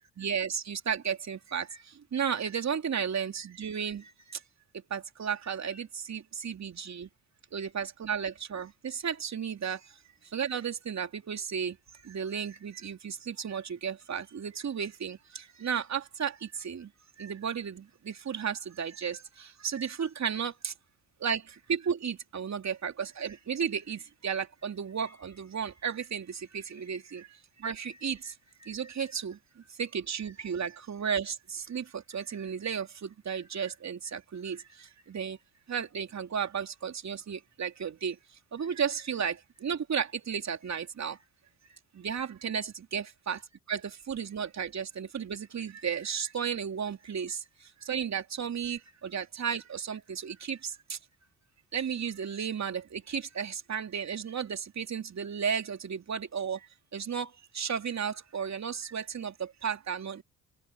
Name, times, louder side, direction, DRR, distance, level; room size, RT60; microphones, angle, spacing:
voice 1, 0.2-1.8 2.1-4.4 4.9-7.1 7.5-9.8 10.3-11.8 12.0-16.9 17.2-20.7 21.2-27.3 27.6-28.3 28.6-29.4 29.8-35.4 35.7-38.2 38.5-41.2 41.9-43.4 43.7-47.4 47.8-51.0 51.7-56.7 56.9-60.2, right 7 dB, 45° right, 3.4 m, -34 dB
hypercardioid pair, 50°, 38 cm